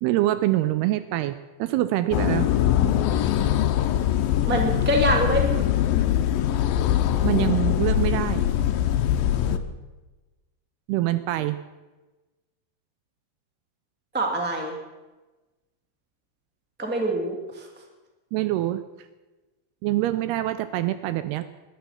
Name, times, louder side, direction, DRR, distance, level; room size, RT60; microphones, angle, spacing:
voice 1, 0.0-2.5 7.2-8.4 10.9-11.6 18.3-18.8 19.8-21.4, right 15 dB, 80° right, 12 dB, 2.4 m, -25 dB
sound 1, 2.1-9.6, left 11 dB, 80° left, 2.2 m, -22 dB
voice 2, 4.4-5.7 14.1-14.7 16.8-17.7, right 1 dB, 5° right, 2 dB, 0.9 m, -24 dB
21.0 x 11.5 x 5.7 m, 1.2 s
omnidirectional pair, 4.9 m